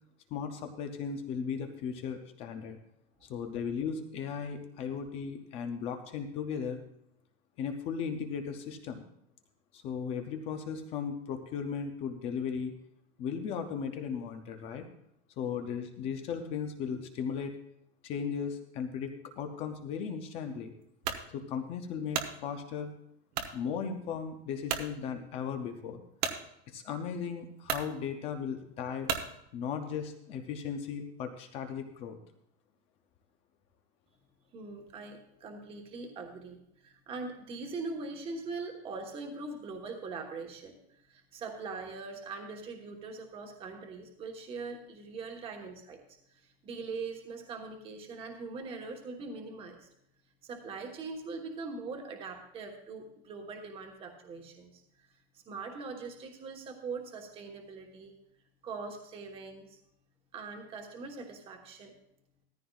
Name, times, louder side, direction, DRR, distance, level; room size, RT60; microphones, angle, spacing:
voice 1, 0.3-2.8 3.2-6.8 7.6-9.0 9.7-12.7 13.2-14.8 15.4-17.5 18.0-20.7 21.3-22.9 23.5-26.0 26.7-29.1 29.5-32.2, left 6 dB, 20° left, 6 dB, 0.5 m, -36 dB
sound 1, 21.0-21.3 21.8-22.4 23.3-23.6 24.1-24.2 24.7-24.9 26.2-26.4 27.2-27.3 27.6-27.9 29.1-29.3, right 8 dB, 40° right, 0.9 m, -33 dB
voice 2, 34.5-46.0 46.3-49.9 50.4-54.8 55.3-58.1 58.6-59.8 60.3-61.9, right 4 dB, 15° right, 3 dB, 1.2 m, -42 dB
15.5 x 14.0 x 2.4 m, 0.77 s
supercardioid pair, 180°, 32 cm